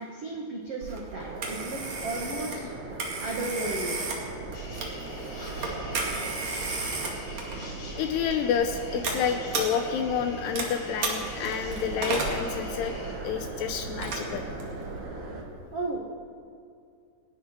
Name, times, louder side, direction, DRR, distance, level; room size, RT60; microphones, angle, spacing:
voice 1, 0.0-2.7 3.2-4.0 15.7-16.0, right 2 dB, 90° right, -1 dB, 1.3 m, -34 dB
Telephone, 0.8-15.1, right 3 dB, 45° right, 2.6 m, -35 dB
sound 1, 1.2-15.4, right 2 dB, 70° right, 1.2 m, -39 dB
sound 2, 4.5-13.1, left 3 dB, 65° left, 5.1 m, -47 dB
voice 2, 6.0-6.9 8.0-12.9 13.2-14.4, left 8 dB, 80° left, 6 dB, 2.5 m, -30 dB
29.0 x 11.5 x 4.5 m, 2.3 s
omnidirectional pair, 5.5 m